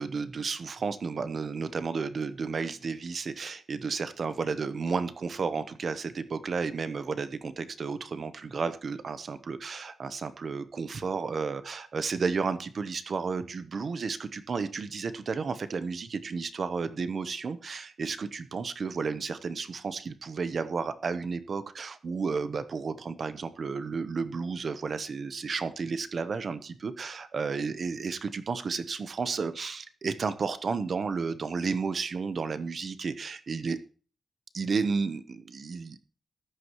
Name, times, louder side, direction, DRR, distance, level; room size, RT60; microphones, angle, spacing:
voice 1, 0.0-33.8 34.5-36.0, right 5 dB, 45° right, 12 dB, 0.9 m, -32 dB
14.0 x 11.0 x 3.1 m, 0.38 s
wide cardioid pair, 180°, 0 cm